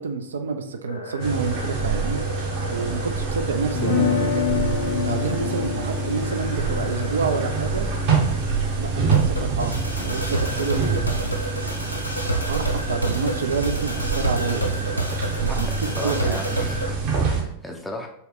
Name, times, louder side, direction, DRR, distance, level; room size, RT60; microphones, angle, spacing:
voice 1, 0.0-2.2 2.7-4.5 5.0-7.9 8.7-14.9 15.4-15.7 16.0-16.4, right 5 dB, 65° right, 7 dB, 0.4 m, -28 dB
sound 1, 0.9-16.9, right 1 dB, 90° left, 0.5 m, -31 dB
sound 2, 1.2-17.4, right 4 dB, 45° right, 0.9 m, -26 dB
sound 3, 3.7-9.7, left 6 dB, 60° left, 0.7 m, -28 dB
voice 2, 15.5-18.1, left 1 dB, 5° left, 0 dB, 0.5 m, -35 dB
4.4 x 2.2 x 3.4 m, 0.73 s
figure-of-eight pair, 90°, 0 cm